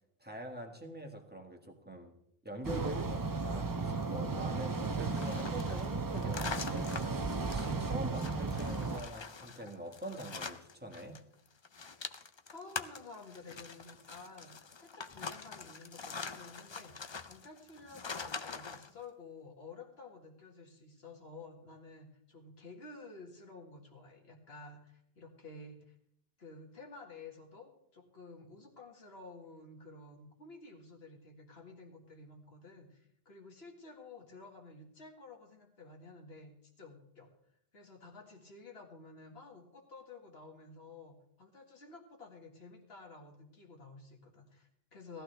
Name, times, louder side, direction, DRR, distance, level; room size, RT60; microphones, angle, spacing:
voice 1, 0.2-2.1 2.4-11.2, right 1 dB, 10° right, 2 dB, 1.6 m, -44 dB
sound 1, 2.6-9.0, right 3 dB, 25° right, 0.5 m, -35 dB
sound 2, 5.1-11.2 11.5-18.9, left 5 dB, 35° left, 0.5 m, -44 dB
voice 2, 12.5-25.9 26.4-37.3 37.7-45.2, left 3 dB, 70° left, 2 dB, 2.2 m, -52 dB
18.0 x 13.5 x 3.3 m, 0.72 s
omnidirectional pair, 1.1 m